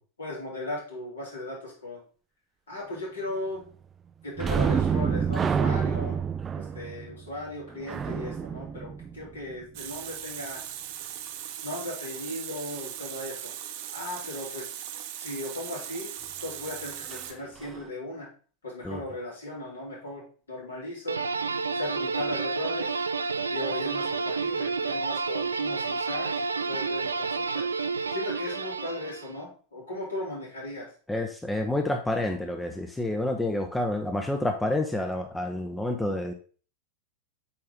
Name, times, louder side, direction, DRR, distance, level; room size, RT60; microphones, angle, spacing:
voice 1, 0.2-2.0 2.7-3.6 4.2-6.2 6.5-10.6 11.6-13.5 13.9-14.7 15.2-16.1 16.4-18.3 18.6-20.2 20.5-21.2 21.8-22.9 23.5-26.4 26.7-27.6 28.1-30.9, left 1 dB, 70° left, -4 dB, 3.5 m, -37 dB
sound 1, 4.4-9.8 17.1-17.2 17.6-17.8, right 6 dB, 20° right, 0.4 m, -28 dB
Water tap faucet, 9.7-17.3, right 11 dB, 45° right, 0.8 m, -39 dB
sound 2, 21.1-29.4, right 4 dB, 75° right, 0.5 m, -30 dB
voice 2, 31.1-36.3, left 1 dB, 5° left, 5 dB, 0.7 m, -29 dB
8.5 x 3.8 x 3.7 m, 0.40 s
figure-of-eight pair, 90°, 0 cm